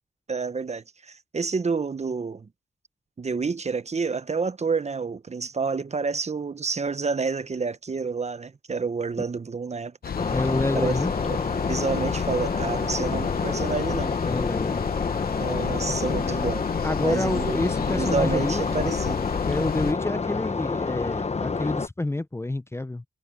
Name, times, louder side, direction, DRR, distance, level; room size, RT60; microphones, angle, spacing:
voice 1, 0.3-2.5 3.2-10.4 10.7-10.9 11.2-11.4 11.7-14.2 15.4-16.6 17.0-19.3, right 4 dB, 40° right, 0.9 m, -29 dB
sound 1, 10.0-19.9, left 7 dB, 65° left, 0.8 m, -31 dB
sound 2, 10.2-21.9, left 4 dB, 40° left, 1.1 m, -28 dB
voice 2, 10.3-11.1 14.2-14.9 16.8-18.9 19.5-23.0, left 2 dB, 15° left, 0.6 m, -28 dB
cardioid pair, 60°, 17 cm